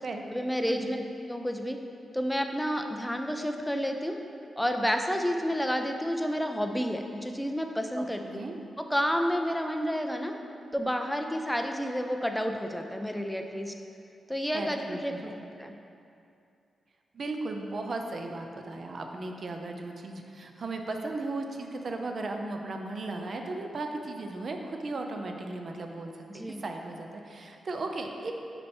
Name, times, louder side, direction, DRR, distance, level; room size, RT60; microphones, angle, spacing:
voice 1, 0.3-1.0 1.3-1.8 2.1-4.2 4.6-8.2 8.8-10.3 10.7-13.7 14.3-15.3 15.6-15.7 26.3-26.6, equal, ahead, 4 dB, 0.4 m, -30 dB
voice 2, 8.0-8.6 14.5-15.4 17.1-28.3, right 2 dB, 45° right, 3 dB, 0.5 m, -36 dB
6.4 x 4.4 x 4.3 m, 2.6 s
wide cardioid pair, 125°, 0 cm